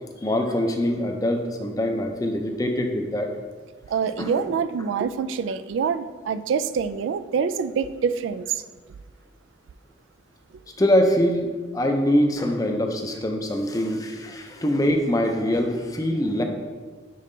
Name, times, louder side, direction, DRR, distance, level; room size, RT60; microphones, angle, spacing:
voice 1, 0.2-3.3 4.2-4.3 10.8-16.4, equal, 20° left, 4 dB, 0.5 m, -23 dB
voice 2, 3.9-8.6, right 6 dB, 85° right, 12 dB, 0.3 m, -26 dB
5.5 x 5.2 x 3.8 m, 1.4 s
head